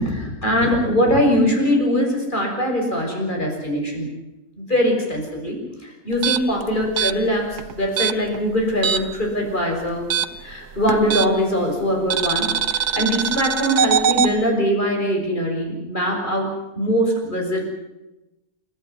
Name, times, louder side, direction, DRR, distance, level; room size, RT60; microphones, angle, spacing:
voice 1, 0.0-4.1 4.6-10.1 10.4-16.5 16.7-17.7, equal, 30° left, 1 dB, 6.9 m, -22 dB
sound 1, 6.1-9.3 9.5-11.6 12.1-14.3, right 8 dB, 80° right, 1.7 m, -22 dB
29.5 x 14.0 x 9.8 m, 0.97 s
omnidirectional pair, 1.6 m